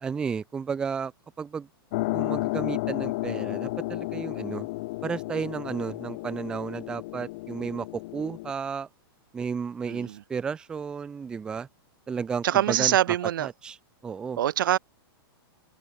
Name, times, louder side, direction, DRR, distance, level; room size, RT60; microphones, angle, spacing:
voice 1, 0.0-1.1 1.4-1.7 2.1-4.7 5.0-7.9 8.1-8.9 9.3-11.7 12.1-13.0 13.4-13.8 14.0-14.4, right 6 dB, 5° right, 0.5 m, -33 dB
sound 1, 1.9-8.5, left 21 dB, 35° left, 1.4 m, -32 dB
voice 2, 9.9-10.2 12.4-13.5 14.4-14.8, right 12 dB, 55° right, 1.1 m, -24 dB
supercardioid pair, 175°, 13 cm